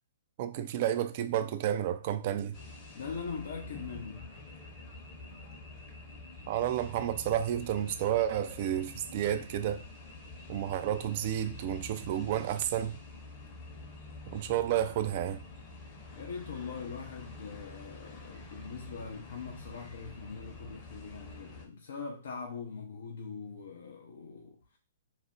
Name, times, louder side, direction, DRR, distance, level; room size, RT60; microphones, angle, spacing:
voice 1, 0.4-2.6 6.5-9.8 10.5-13.0 14.3-15.4, right 11 dB, 45° right, 0.4 m, -31 dB
sound 1, 2.5-21.7, left 2 dB, 30° left, 0.8 m, -48 dB
voice 2, 2.9-4.4 16.1-24.8, left 5 dB, 70° left, 0.5 m, -42 dB
2.5 x 2.1 x 3.6 m
hypercardioid pair, 125°, 0 cm